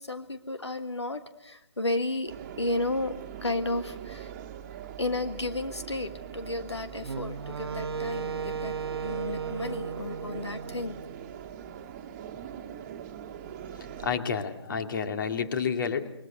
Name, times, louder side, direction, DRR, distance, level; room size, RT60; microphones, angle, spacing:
voice 1, 0.0-3.1 3.4-4.3 5.0-10.9, left 2 dB, 85° left, 8 dB, 1.6 m, -33 dB
sound 1, 2.3-14.2, right 9 dB, 30° right, 1.6 m, -42 dB
Wind instrument woodwind instrument, 7.0-11.3, right 6 dB, 70° right, 0.9 m, -35 dB
voice 2, 14.0-16.1, left 6 dB, 50° left, 7 dB, 2.4 m, -30 dB
28.0 x 22.5 x 6.5 m, 0.80 s
figure-of-eight pair, 140°, 14 cm